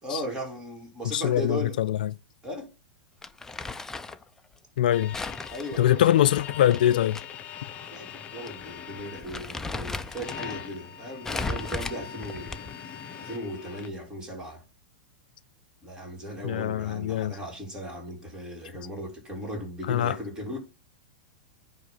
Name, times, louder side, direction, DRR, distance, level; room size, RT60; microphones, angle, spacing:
voice 1, 0.0-1.8 2.4-2.7 5.5-6.0 7.8-12.6 13.2-14.6 15.8-20.6, equal, 15° right, 3.1 m, -37 dB
voice 2, 1.0-2.1 4.8-5.2 5.8-7.2 16.4-17.3 19.9-20.2, left 12 dB, 75° left, 0.4 m, -23 dB
Crumpling crinkling, 3.2-4.2 5.1-7.2 7.6-7.7 8.5-8.6 9.0-10.6 11.2-12.9, left 3 dB, 10° left, 0.5 m, -36 dB
sound 1, 4.9-13.9, left 8 dB, 30° left, 0.9 m, -42 dB
9.3 x 3.2 x 5.8 m
hypercardioid pair, 115°, 5 cm